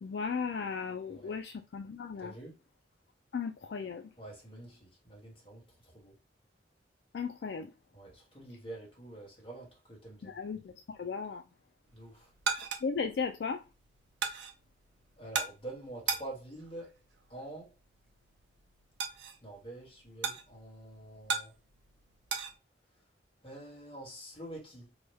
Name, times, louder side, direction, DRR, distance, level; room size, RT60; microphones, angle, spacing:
voice 1, 0.0-2.3 3.3-4.0 7.1-7.7 10.2-11.4 12.8-13.6, left 5 dB, 65° left, 0.3 m, -36 dB
voice 2, 2.2-2.6 4.2-5.6 5.9-6.1 7.9-10.4 11.9-12.3 15.2-16.9 17.3-17.7 19.4-21.5 23.4-24.9, right 1 dB, 30° left, 1.5 m, -46 dB
sound 1, 11.9-22.5, right 5 dB, 75° right, 0.6 m, -39 dB
3.0 x 2.3 x 3.1 m
head